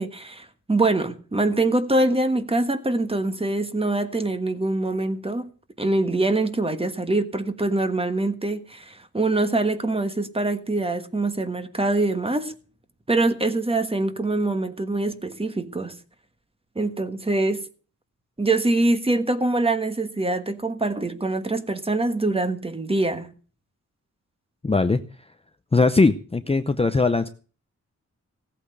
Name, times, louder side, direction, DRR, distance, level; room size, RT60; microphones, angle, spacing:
voice 1, 0.0-5.5 5.8-12.5 13.1-16.0 16.7-17.6 18.4-23.3, right 2 dB, 20° right, 1.4 m, -24 dB
voice 2, 24.6-25.0 25.7-27.3, left 3 dB, 20° left, 0.6 m, -20 dB
17.0 x 8.5 x 6.7 m
wide cardioid pair, 170°, 30 cm